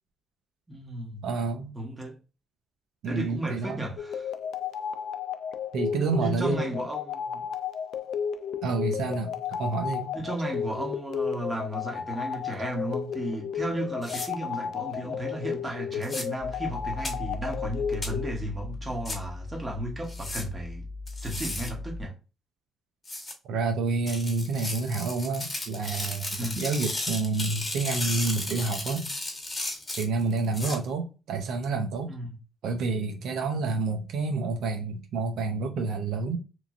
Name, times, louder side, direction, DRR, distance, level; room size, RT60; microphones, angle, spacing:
voice 1, 0.7-1.2 1.7-2.2 3.1-4.3 6.2-7.5 8.7-9.1 10.1-20.8 21.2-22.1 26.4-26.6 32.0-32.4, right 1 dB, 25° right, 1.1 m, -34 dB
voice 2, 1.2-1.7 3.0-3.8 5.7-6.7 8.6-9.3 9.6-10.1 23.5-29.1 30.0-32.1 32.6-36.4, right 3 dB, 80° right, 0.5 m, -29 dB
sound 1, 4.0-18.3, left 7 dB, 75° left, 0.3 m, -33 dB
sound 2, 14.0-14.3 16.0-16.2 17.0-17.1 18.0-18.1 19.0-19.2 20.1-20.4 21.1-21.7 23.0-23.3 24.1-30.8, left 2 dB, 25° left, 1.1 m, -34 dB
sound 3, 16.4-22.0, left 2 dB, 45° right, 0.9 m, -38 dB
3.0 x 2.5 x 2.4 m
cardioid pair, 90°, 0 cm